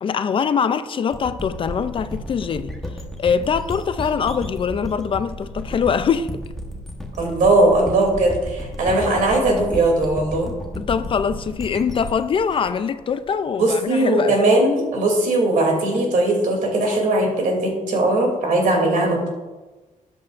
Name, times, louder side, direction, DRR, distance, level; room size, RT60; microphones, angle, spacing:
voice 1, 0.0-2.7 3.2-6.3 10.8-14.3, left 6 dB, 40° left, 0.4 m, -23 dB
sound 1, 1.1-13.7, left 1 dB, ahead, 1.1 m, -33 dB
voice 2, 7.2-10.5 13.6-19.3, right 2 dB, 75° right, 2.8 m, -19 dB
13.0 x 8.9 x 2.5 m
wide cardioid pair, 170°, 14 cm